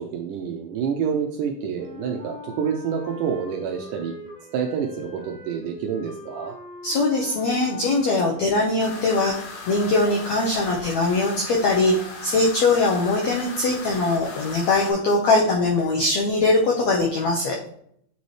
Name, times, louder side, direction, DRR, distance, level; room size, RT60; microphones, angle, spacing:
voice 1, 0.0-4.1 4.5-6.6, right 7 dB, 85° right, 2 dB, 1.9 m, -28 dB
Wind instrument woodwind instrument, 1.7-9.4, left 1 dB, 15° right, 1.1 m, -42 dB
voice 2, 6.8-17.6, left 2 dB, 85° left, -1 dB, 1.5 m, -21 dB
sound 1, 8.8-14.9, left 4 dB, 60° left, 2.7 m, -38 dB
9.2 x 4.1 x 3.2 m, 0.69 s
omnidirectional pair, 4.3 m